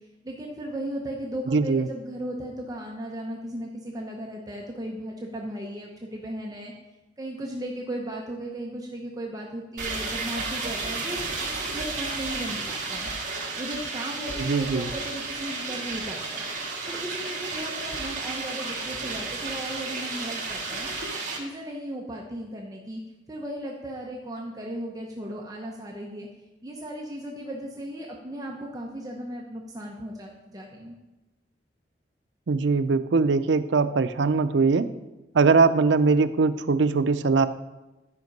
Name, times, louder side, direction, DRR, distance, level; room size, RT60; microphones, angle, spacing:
voice 1, 0.2-6.7 7.2-13.1 13.6-16.5 16.9-20.9 21.3-23.0 23.3-26.3 26.6-31.0, right 1 dB, 20° right, -1 dB, 0.9 m, -36 dB
voice 2, 1.5-1.9 14.4-14.9 32.5-34.9 35.3-37.5, right 4 dB, 85° right, 12 dB, 0.5 m, -21 dB
sound 1, 9.8-21.4, right 3 dB, 45° right, 2.0 m, -32 dB
12.5 x 5.2 x 5.3 m, 1.1 s
head